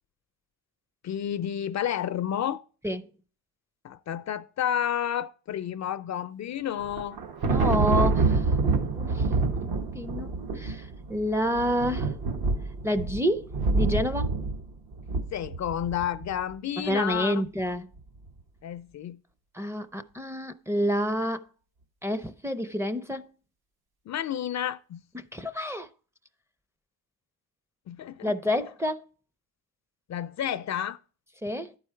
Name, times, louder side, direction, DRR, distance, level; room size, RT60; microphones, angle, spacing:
voice 1, 1.0-2.6 3.8-7.2 15.3-17.4 18.6-19.2 24.1-25.0 27.9-28.3 30.1-31.0, left 10 dB, 50° left, 0.4 m, -31 dB
Thunder, 6.8-16.2, right 3 dB, 75° right, 1.4 m, -27 dB
voice 2, 7.4-8.5 8.9-9.3 9.6-12.1 12.8-14.3 16.8-17.9 19.5-21.4 22.0-23.3 25.1-25.9 28.2-29.0 31.4-31.7, equal, 5° right, 0.5 m, -29 dB
11.5 x 4.7 x 4.4 m
cardioid pair, 90°, 37 cm